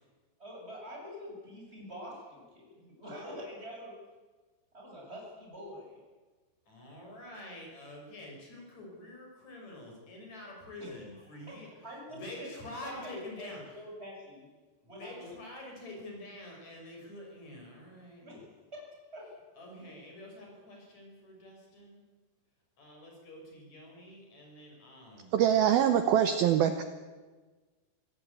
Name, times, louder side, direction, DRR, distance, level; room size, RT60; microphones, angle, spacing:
voice 1, 0.4-3.9 4.7-6.0 10.8-11.0 11.3-11.5 11.8-14.4 14.9-15.3 18.2-18.4 18.7-18.9 19.1-19.3, equal, 10° right, -2 dB, 7.3 m, -45 dB
voice 2, 6.7-11.7 12.1-13.6 14.8-18.2 19.6-22.0 22.8-25.3, left 1 dB, 35° left, 0 dB, 7.0 m, -47 dB
voice 3, 25.3-26.8, right 10 dB, 75° right, 9 dB, 2.3 m, -24 dB
25.5 x 16.5 x 8.6 m, 1.3 s
omnidirectional pair, 5.4 m